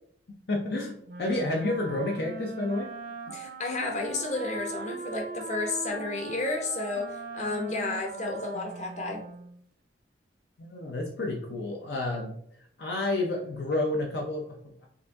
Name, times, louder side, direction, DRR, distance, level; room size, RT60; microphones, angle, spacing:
voice 1, 0.5-2.9 10.6-12.3 12.8-14.9, left 2 dB, 65° left, 1 dB, 0.6 m, -30 dB
Wind instrument woodwind instrument, 1.1-9.6, right 3 dB, 55° right, 0.5 m, -40 dB
voice 2, 3.3-9.2, left 3 dB, 40° left, 1 dB, 1.0 m, -32 dB
5.6 x 2.6 x 3.5 m, 0.65 s
head